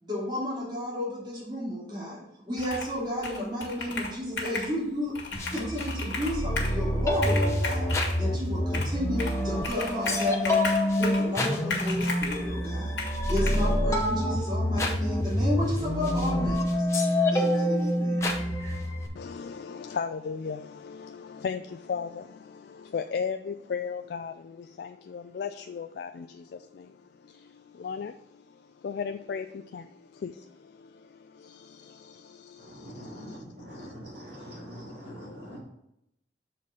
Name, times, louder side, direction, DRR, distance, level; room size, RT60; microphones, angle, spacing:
voice 1, 0.0-7.8 8.2-10.7 11.0-13.0 13.3-16.9 17.3-18.3 18.6-18.7, left 1 dB, 25° right, 2.6 m, -32 dB
Computer keyboard, 2.6-3.0 3.2-4.7 5.1-6.8 7.1-8.2 8.7-9.4 9.6-11.3 11.7-12.4 13.0-13.6, left 3 dB, 90° left, 1.6 m, -35 dB
sound 1, 5.4-19.1, left 1 dB, 15° left, 0.8 m, -27 dB
voice 2, 19.2-27.0 27.2-28.4 28.8-33.4 33.7-33.9 34.4-34.7 35.0-35.6, left 6 dB, 65° left, 0.3 m, -37 dB
voice 3, 32.6-35.6, equal, 70° right, 2.7 m, -43 dB
7.0 x 4.2 x 4.9 m
head